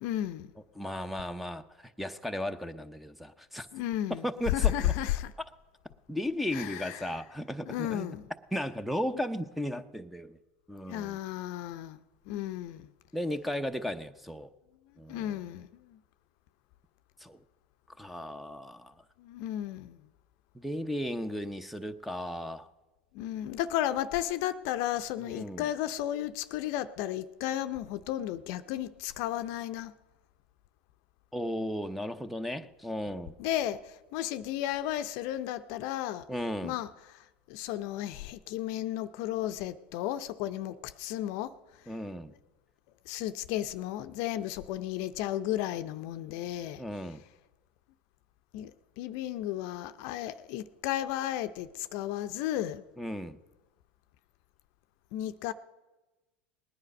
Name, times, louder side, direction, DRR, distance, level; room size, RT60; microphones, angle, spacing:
voice 1, 0.0-0.5 3.7-5.3 6.5-7.1 7.7-8.3 10.9-12.0 12.3-12.9 15.1-16.0 19.2-20.0 23.1-29.9 33.4-36.2 36.6-36.9 37.1-41.5 43.1-46.8 48.5-48.7 49.0-52.8 55.1-55.5, left 12 dB, 60° left, 0.6 m, -33 dB
voice 2, 0.8-3.7 4.2-4.9 6.1-8.1 8.5-10.4 10.7-11.2 13.1-14.5 15.0-15.4 17.2-17.4 18.0-18.9 20.5-22.7 25.2-25.7 31.3-33.3 36.3-36.8 41.9-42.3 46.8-47.2 53.0-53.4, equal, ahead, 0.7 m, -35 dB
19.5 x 9.8 x 5.3 m
hypercardioid pair, 95°, 6 cm